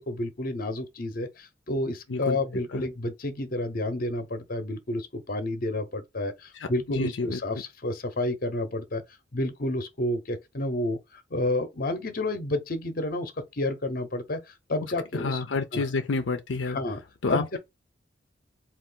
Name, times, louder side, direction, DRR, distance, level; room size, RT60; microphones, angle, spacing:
voice 1, 0.0-9.0 9.3-15.4 15.7-15.8 16.7-17.0 17.3-17.6, left 1 dB, 50° left, 0.8 m, -30 dB
voice 2, 6.5-7.4 15.1-16.8 17.2-17.6, left 4 dB, 80° left, 0.5 m, -29 dB
4.3 x 2.5 x 3.8 m
head